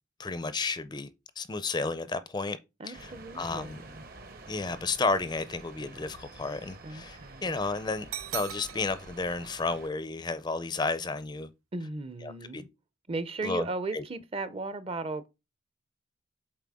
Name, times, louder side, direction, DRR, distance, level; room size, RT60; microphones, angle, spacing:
voice 1, 0.2-1.1 1.4-2.6 2.9-3.8 4.5-11.5 12.2-12.6 13.4-13.7 13.9-14.0, left 3 dB, 20° left, 0.4 m, -32 dB
voice 2, 2.8-4.0 6.8-7.5 11.7-12.7 13.1-15.3, right 3 dB, 30° right, 0.5 m, -36 dB
sound 1, 2.9-9.9, right 3 dB, 45° right, 0.9 m, -49 dB
sound 2, 8.1-9.2, right 11 dB, 90° right, 0.6 m, -38 dB
7.5 x 4.3 x 3.6 m
head